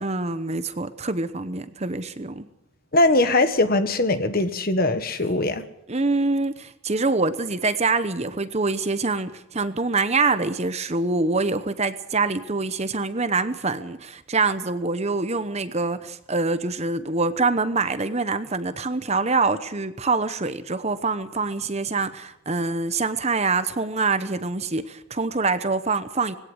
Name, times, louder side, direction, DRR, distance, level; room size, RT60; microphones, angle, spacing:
voice 1, 0.0-2.4 5.9-26.4, right 3 dB, 30° right, 11 dB, 0.9 m, -25 dB
voice 2, 2.9-5.6, left 2 dB, 40° left, 9 dB, 1.5 m, -21 dB
20.0 x 17.0 x 7.9 m, 0.77 s
head